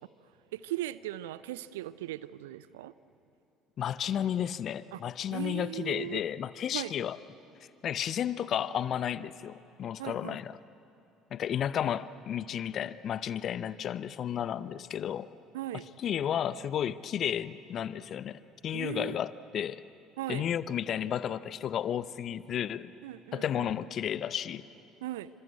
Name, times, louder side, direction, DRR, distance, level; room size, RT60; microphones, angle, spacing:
voice 1, 0.5-2.9 4.9-5.0 5.3-6.2 6.7-6.9 10.0-10.4 15.5-15.9 18.7-19.2 20.2-20.4 23.0-23.7 25.0-25.3, right 14 dB, 70° right, 17 dB, 0.6 m, -38 dB
voice 2, 3.8-7.2 7.8-10.6 11.3-15.3 16.0-19.8 20.3-22.9 23.3-24.6, left 9 dB, 45° left, 17 dB, 0.8 m, -32 dB
27.5 x 26.0 x 8.3 m, 2.9 s
figure-of-eight pair, 55°, 0 cm